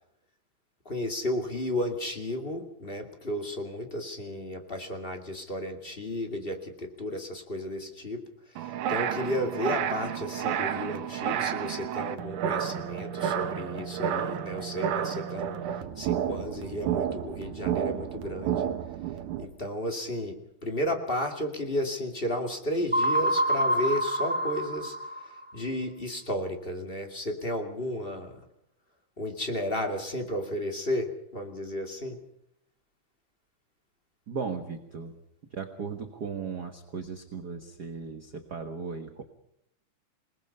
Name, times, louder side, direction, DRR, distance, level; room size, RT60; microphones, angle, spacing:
voice 1, 0.8-15.5 16.0-18.7 19.4-25.0 25.2-28.4 29.2-32.2, left 1 dB, 20° left, 4 dB, 2.4 m, -33 dB
sound 1, 8.6-19.5, right 9 dB, 90° right, 2.7 m, -31 dB
sound 2, 22.9-25.5, right 1 dB, 5° right, 1.4 m, -26 dB
voice 2, 34.3-35.1 35.5-39.2, right 5 dB, 45° right, 6 dB, 1.4 m, -36 dB
28.0 x 19.5 x 5.5 m, 0.77 s
omnidirectional pair, 3.4 m